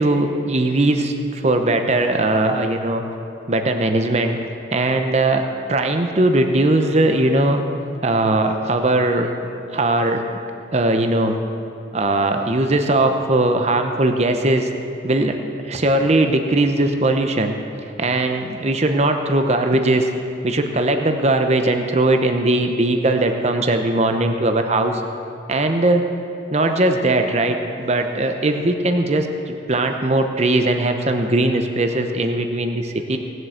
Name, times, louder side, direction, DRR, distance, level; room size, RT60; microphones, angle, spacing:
voice 1, 0.0-3.0 3.5-4.4 4.7-5.4 5.7-7.6 8.0-9.3 9.7-10.2 10.7-11.4 11.9-14.7 15.0-15.3 15.6-17.5 18.0-20.1 20.4-25.0 25.5-26.0 26.5-33.2, right 2 dB, 35° right, 5 dB, 0.8 m, -19 dB
18.0 x 7.8 x 7.8 m, 2.8 s
head